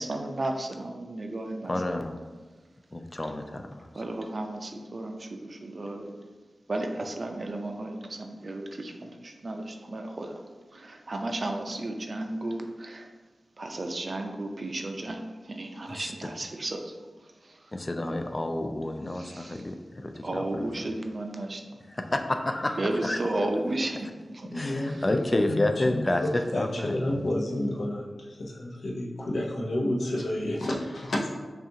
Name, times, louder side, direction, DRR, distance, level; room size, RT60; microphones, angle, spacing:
voice 1, 0.0-2.0 3.9-6.2 6.7-10.4 10.7-13.1 13.6-17.7 19.1-19.7 20.2-21.8 22.8-24.5 24.8-25.1, right 2 dB, 50° right, 4 dB, 0.4 m, -34 dB
voice 2, 1.7-2.2 2.9-3.9 15.9-16.1 17.7-20.7 21.9-23.2 24.0-24.1 24.5-27.3, left 1 dB, 30° left, 6 dB, 0.3 m, -30 dB
voice 3, 24.4-31.3, left 1 dB, 80° left, -3 dB, 0.7 m, -30 dB
5.4 x 2.4 x 2.7 m, 1.4 s
wide cardioid pair, 75°, 0 cm